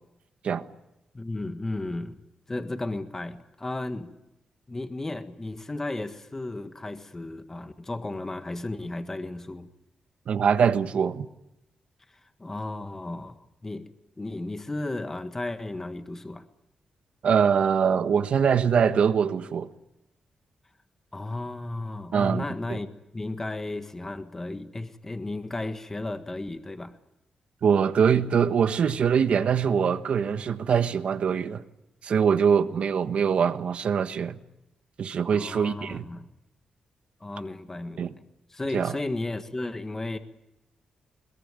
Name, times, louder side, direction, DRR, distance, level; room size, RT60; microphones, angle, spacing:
voice 1, 1.1-2.2 2.5-4.1 4.7-9.7 12.1-13.9 14.2-16.4 21.1-27.0 35.3-36.3 37.2-38.1 38.5-40.2, left 2 dB, 20° left, 1.7 m, -34 dB
voice 2, 10.3-11.3 17.2-19.7 22.1-22.4 22.7-22.8 27.6-31.6 32.0-34.4 35.0-36.0 38.0-38.1 38.7-39.0, right 7 dB, 70° right, 1.4 m, -23 dB
22.0 x 21.5 x 9.7 m
cardioid pair, 105°, 2 cm